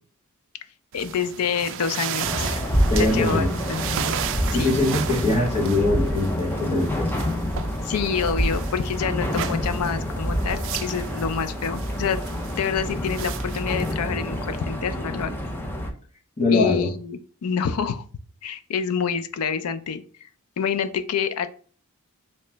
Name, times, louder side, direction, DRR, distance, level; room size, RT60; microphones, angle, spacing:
voice 1, 0.9-2.6 3.0-4.1 4.5-4.8 7.8-15.4 16.5-18.0 18.4-20.3 20.6-21.5, left 6 dB, 85° left, 11 dB, 0.4 m, -27 dB
sound 1, 0.9-14.6, right 9 dB, 60° right, 0.3 m, -35 dB
sound 2, 2.2-15.9, equal, 10° left, 0.5 m, -27 dB
voice 2, 2.7-3.6 4.5-7.1 16.4-16.9, left 2 dB, 30° left, -2 dB, 1.0 m, -22 dB
sound 3, 3.3-7.3 7.7-7.9 8.6-8.9, right 2 dB, 40° right, 0.7 m, -40 dB
3.2 x 2.9 x 3.3 m, 0.44 s
head